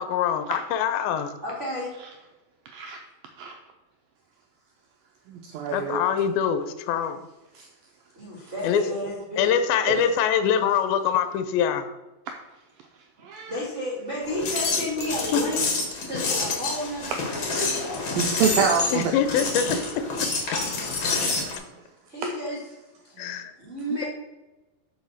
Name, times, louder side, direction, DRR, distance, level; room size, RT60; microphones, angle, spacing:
voice 1, 0.0-1.3 5.7-7.2 8.6-8.8 9.4-11.9 15.3-15.4 18.9-19.7 23.2-23.5, left 8 dB, 80° left, 9 dB, 2.2 m, -24 dB
voice 2, 1.4-1.9 8.1-9.5 13.5-15.6 16.0-17.4 22.1-22.6 23.0-23.1 23.6-24.1, left 1 dB, 70° right, -6 dB, 0.6 m, -31 dB
voice 3, 5.3-6.0 7.6-7.7 9.9-10.0 12.3-12.4 13.2-13.5 17.1-17.2 18.1-19.1 21.5-21.6 23.2-23.4, right 6 dB, 85° right, 3 dB, 2.0 m, -26 dB
sound 1, 14.3-21.6, left 3 dB, 55° left, 1.4 m, -28 dB
5.8 x 5.3 x 6.3 m, 1.1 s
omnidirectional pair, 4.8 m